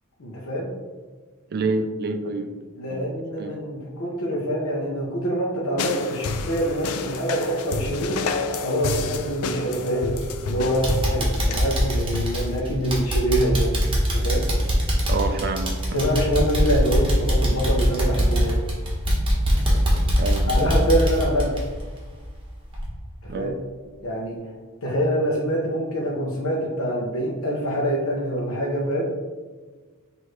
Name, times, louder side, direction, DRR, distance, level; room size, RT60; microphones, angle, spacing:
voice 1, 0.2-0.7 2.7-8.2 8.6-10.2 10.5-13.7 14.1-14.5 15.9-18.5 20.5-21.5 23.2-23.6 24.0-24.4 24.8-29.0, equal, 65° left, -3 dB, 0.7 m, -25 dB
voice 2, 1.5-2.6 2.9-3.6 15.1-16.0 20.2-20.7 23.3-23.6 24.3-24.4, right 3 dB, 45° right, 7 dB, 0.4 m, -28 dB
sound 1, 5.8-12.6, left 3 dB, 85° left, 0.4 m, -29 dB
sound 2, 10.2-10.5 10.8-22.4 22.7-22.9 23.3-23.4, equal, 25° right, 1.2 m, -22 dB
6.3 x 2.6 x 3.2 m, 1.4 s
head